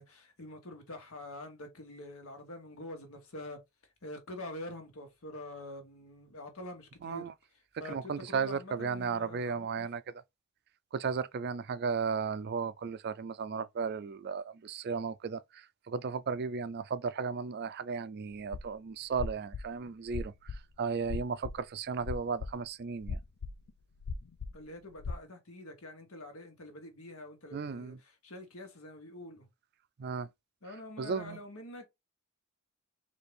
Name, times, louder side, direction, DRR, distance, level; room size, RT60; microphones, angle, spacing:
voice 1, 0.0-3.6 4.0-7.3 7.8-9.9 24.5-29.5 30.6-31.9, left 1 dB, 70° left, 1.5 m, -46 dB
voice 2, 7.0-7.3 7.9-10.0 10.9-20.3 20.8-23.2 27.5-28.0 30.0-30.3 31.0-31.4, right 5 dB, 45° right, 0.4 m, -35 dB
sound 1, 18.3-18.7 19.1-20.6 21.0-21.6 22.0-22.5 23.0-23.7 24.0-24.6 24.9-25.1, left 4 dB, 90° left, 0.5 m, -37 dB
4.3 x 2.8 x 3.2 m
head